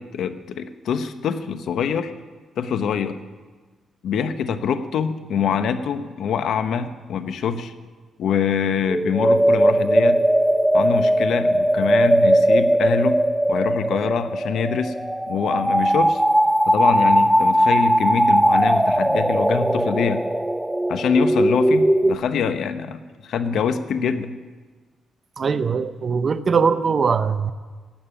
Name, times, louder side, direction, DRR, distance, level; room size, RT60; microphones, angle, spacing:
voice 1, 0.0-2.1 2.6-3.2 4.0-7.7 8.2-10.2 10.7-13.2 13.5-14.9 15.3-16.2 16.7-20.2 20.9-24.3, left 6 dB, 75° left, 10 dB, 1.0 m, -24 dB
sound 1, 8.9-22.1, right 1 dB, 5° right, 0.6 m, -19 dB
voice 2, 25.4-27.5, right 5 dB, 45° right, 11 dB, 0.7 m, -21 dB
16.0 x 8.9 x 10.0 m, 1.4 s
cardioid pair, 95°, 0 cm